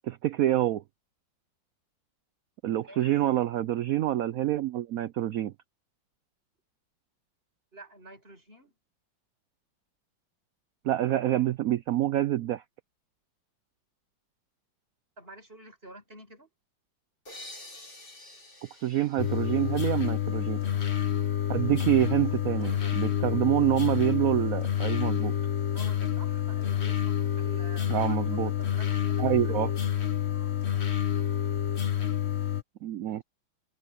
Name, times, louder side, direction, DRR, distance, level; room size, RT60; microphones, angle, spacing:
voice 1, 0.0-0.8 2.6-5.5 10.8-12.6 18.8-20.6 21.5-25.3 27.9-28.5 29.2-29.7 32.8-33.2, right 13 dB, 85° right, 0.7 m, -27 dB
voice 2, 2.8-3.2 7.7-8.7 15.2-16.5 22.6-23.0 25.7-29.5 30.3-30.6 33.1-33.2, right 1 dB, 30° right, 6.2 m, -50 dB
sound 1, 17.3-20.8, left 1 dB, 60° left, 6.1 m, -49 dB
sound 2, 19.2-32.6, left 10 dB, 35° left, 1.4 m, -28 dB
omnidirectional pair, 2.1 m